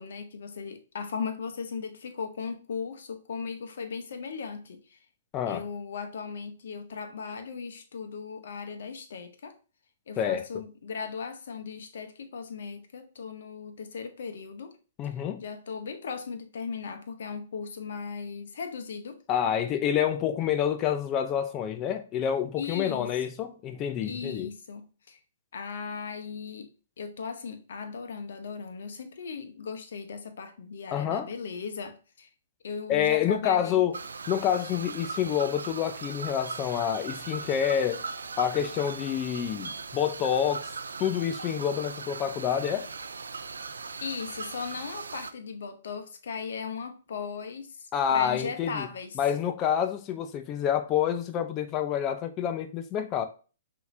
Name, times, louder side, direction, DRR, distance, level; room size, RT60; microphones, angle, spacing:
voice 1, 0.0-5.0 5.5-9.6 10.1-14.8 15.4-19.2 22.6-23.1 24.0-25.2 25.5-26.7 27.0-32.3 32.6-33.8 44.0-49.2, left 5 dB, 65° left, 0.9 m, -37 dB
voice 2, 5.3-5.6 10.2-10.4 15.0-15.4 19.3-24.5 30.9-31.3 32.9-34.0 34.3-38.0 38.4-40.7 41.0-42.9 47.9-48.9 49.2-53.3, left 9 dB, 30° left, 0.6 m, -28 dB
sound 1, 33.9-45.3, right 4 dB, 75° right, 0.4 m, -39 dB
5.7 x 2.9 x 2.7 m
figure-of-eight pair, 120°, 0 cm